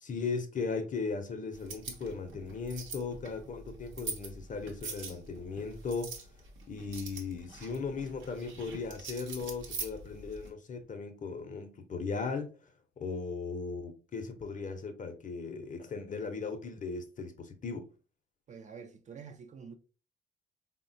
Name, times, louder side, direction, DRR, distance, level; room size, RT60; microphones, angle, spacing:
voice 1, 0.0-6.2 6.7-12.5 13.0-17.9, left 4 dB, 40° left, 0.6 m, -37 dB
sound 1, 1.5-10.5, right 4 dB, 80° right, 0.8 m, -44 dB
voice 2, 18.5-19.7, right 6 dB, 40° right, 0.4 m, -47 dB
3.5 x 2.1 x 2.5 m
cardioid pair, 90°, 20 cm